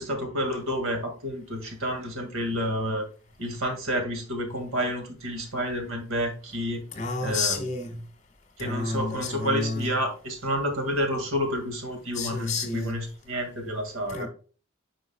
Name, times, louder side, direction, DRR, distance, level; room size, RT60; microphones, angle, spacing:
voice 1, 0.0-3.1 3.4-6.8 7.2-7.6 8.6-14.3, equal, 90° right, 2.1 m, -29 dB
voice 2, 6.9-8.0 8.6-9.9 12.1-13.0 14.1-14.3, left 3 dB, 35° left, 1.5 m, -30 dB
9.5 x 5.4 x 2.3 m
head